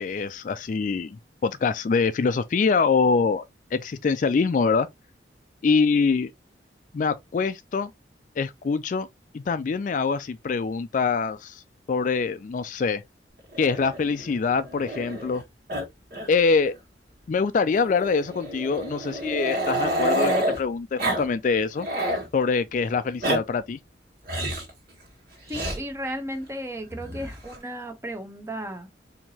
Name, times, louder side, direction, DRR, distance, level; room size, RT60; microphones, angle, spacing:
voice 1, 0.0-3.4 3.7-4.9 5.6-6.3 6.9-7.9 8.4-9.1 9.3-11.6 11.9-13.0 13.6-15.4 16.3-16.7 17.3-21.9 22.3-23.8, left 5 dB, 45° left, 0.3 m, -24 dB
Growling, 13.5-15.4 15.7-16.3 16.6-16.7 17.7-20.6 21.0-21.2 21.6-22.3 23.0-23.4 24.3-24.7 25.5-25.8 26.9-27.6, right 1 dB, 55° right, 1.8 m, -29 dB
voice 2, 25.5-28.9, equal, 15° right, 0.8 m, -34 dB
4.5 x 2.9 x 2.8 m
head